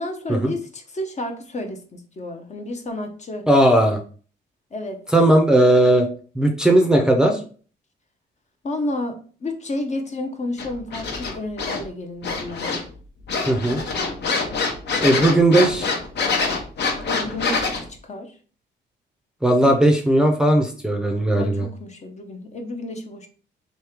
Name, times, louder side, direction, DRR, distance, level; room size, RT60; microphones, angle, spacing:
voice 1, 0.0-3.5 4.7-5.0 8.6-12.8 17.1-18.4 21.4-23.3, left 1 dB, 35° left, 5 dB, 0.7 m, -31 dB
voice 2, 3.5-4.0 5.1-6.1 6.4-7.4 13.5-13.8 15.0-15.9 19.4-21.7, right 1 dB, 5° right, 2 dB, 0.6 m, -17 dB
sound 1, 10.6-11.8 12.2-13.0 13.3-17.8, left 4 dB, 60° left, 0.9 m, -25 dB
3.1 x 2.8 x 3.5 m, 0.41 s
cardioid pair, 90°, 20 cm